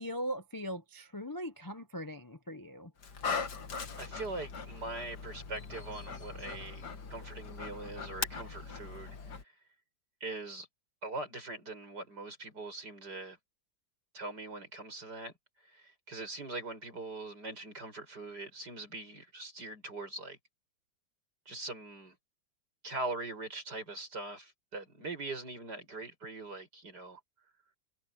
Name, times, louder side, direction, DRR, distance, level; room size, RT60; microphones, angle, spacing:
voice 1, 0.0-2.9, equal, 25° left, 0.4 m, -40 dB
Dog, 3.0-9.4, left 5 dB, 60° left, 2.3 m, -40 dB
voice 2, 4.0-9.5 10.2-10.7 11.0-13.4 14.1-15.3 15.6-20.4 21.5-22.2 22.8-27.2, right 2 dB, 60° right, 8.0 m, -42 dB
omnidirectional pair, 2.0 m